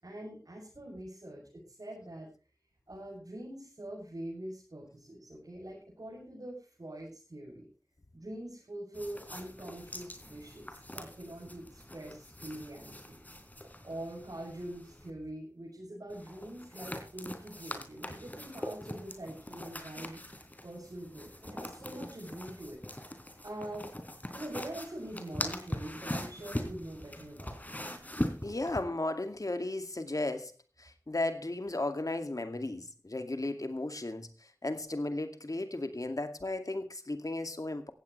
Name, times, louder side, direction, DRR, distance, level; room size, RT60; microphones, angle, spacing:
voice 1, 0.0-2.3 2.9-7.7 8.1-13.2 13.8-20.2 20.6-22.8 23.4-23.9 24.3-27.6, right 1 dB, 85° right, -5 dB, 7.2 m, -44 dB
sound 1, 8.9-15.1 16.1-28.8, left 1 dB, 25° left, 3.6 m, -42 dB
voice 2, 28.4-30.5 30.8-34.3 34.6-37.9, left 2 dB, 70° left, 7 dB, 2.3 m, -35 dB
16.5 x 16.0 x 3.3 m, 0.33 s
wide cardioid pair, 40°, 6 cm